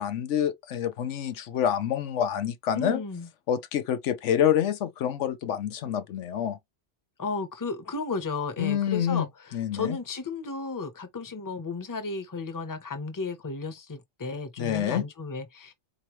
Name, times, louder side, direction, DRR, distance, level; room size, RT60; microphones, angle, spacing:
voice 1, 0.0-3.0 3.5-6.6 8.6-9.3 9.5-10.0 14.6-15.0, left 9 dB, 85° left, 1.0 m, -27 dB
voice 2, 2.7-3.3 7.2-15.7, left 4 dB, 20° left, 0.7 m, -34 dB
4.3 x 3.1 x 3.0 m
omnidirectional pair, 1.2 m